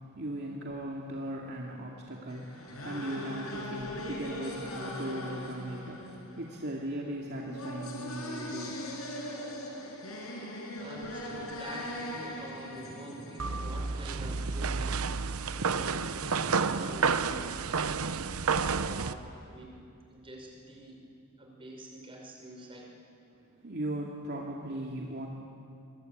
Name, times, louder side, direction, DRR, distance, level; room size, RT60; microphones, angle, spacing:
voice 1, 0.1-8.8 23.4-25.3, right 1 dB, 50° right, -2 dB, 2.5 m, -38 dB
sound 1, 2.3-14.2, left 1 dB, 80° left, 6.1 m, -40 dB
voice 2, 10.8-15.0 15.4-19.7 20.1-21.0 21.4-23.0, right 1 dB, 25° right, 0 dB, 5.3 m, -45 dB
sound 2, 13.4-19.1, right 5 dB, 80° right, 0.9 m, -30 dB
25.5 x 23.5 x 9.4 m, 2.5 s
head